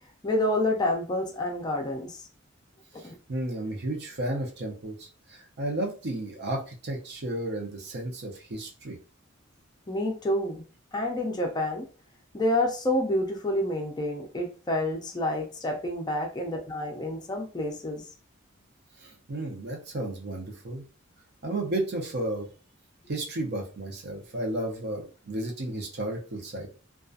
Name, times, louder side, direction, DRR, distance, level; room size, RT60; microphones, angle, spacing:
voice 1, 0.2-2.2 3.0-3.1 9.9-10.6 10.9-11.9 12.3-18.0, left 1 dB, 20° left, 2 dB, 0.4 m, -28 dB
voice 2, 3.0-9.0 19.0-20.8 21.4-22.5 23.1-26.7, right 1 dB, 55° right, 0 dB, 0.7 m, -33 dB
2.6 x 2.3 x 2.3 m, 0.37 s
head